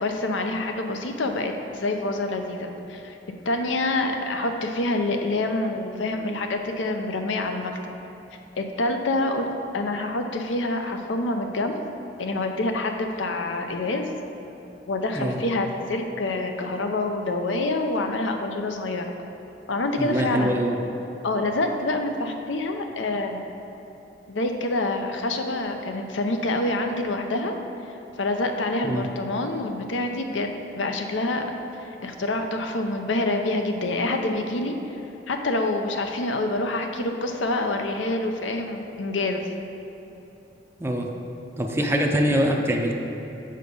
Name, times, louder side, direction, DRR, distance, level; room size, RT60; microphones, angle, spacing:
voice 1, 0.0-3.2 3.5-7.7 8.6-9.5 9.7-11.8 12.2-14.1 14.9-19.1 19.7-20.5 21.2-23.4 24.3-27.6 28.2-30.5 30.7-31.4 31.7-34.8 35.3-39.4, left 2 dB, 85° left, 5 dB, 0.7 m, -26 dB
voice 2, 20.0-20.7 28.8-29.1 40.8-41.1 41.6-42.9, equal, 15° right, 1 dB, 0.5 m, -23 dB
6.4 x 5.1 x 5.4 m, 2.9 s
head